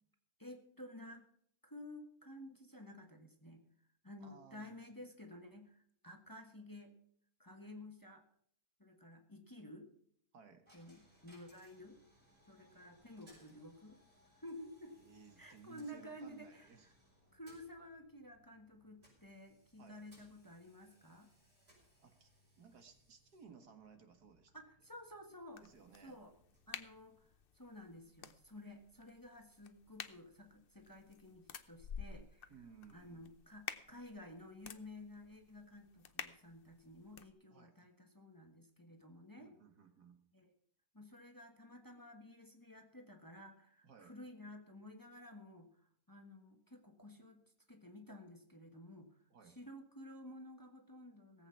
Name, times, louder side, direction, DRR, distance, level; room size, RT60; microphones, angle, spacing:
voice 1, 0.4-1.2 1.6-3.6 4.0-6.9 7.4-8.2 8.8-9.9 10.7-12.0 12.5-15.0 15.4-16.9 17.3-21.3 24.5-25.6 26.0-26.3 26.7-32.5 32.9-39.5 40.3-40.5 40.9-45.8 46.1-47.4 47.7-51.5, left 1 dB, 15° left, 5 dB, 1.3 m, -53 dB
voice 2, 4.2-5.1 10.3-10.7 14.9-16.9 19.8-20.1 22.0-22.3 22.6-24.5 25.6-26.2 32.5-33.2 37.5-37.8 39.4-40.2 43.8-44.1 49.3-49.6, right 6 dB, 80° right, 7 dB, 2.2 m, -60 dB
Coin (dropping), 10.7-27.6, equal, 40° right, 6.4 m, -70 dB
sound 1, 25.5-37.3, left 7 dB, 45° left, 0.8 m, -52 dB
18.0 x 8.2 x 5.7 m, 0.65 s
omnidirectional pair, 1.7 m